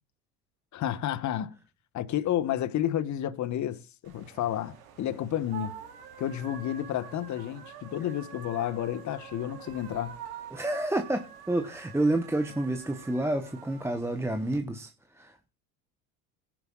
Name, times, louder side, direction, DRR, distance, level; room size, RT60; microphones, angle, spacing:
voice 1, 0.7-1.5 1.9-5.7 6.2-10.2, left 11 dB, 40° left, 1.2 m, -31 dB
sound 1, 4.0-14.6, right 8 dB, 80° right, 3.5 m, -46 dB
voice 2, 10.5-15.5, right 1 dB, 5° right, 1.0 m, -29 dB
20.0 x 11.0 x 2.3 m
hypercardioid pair, 85°, 44 cm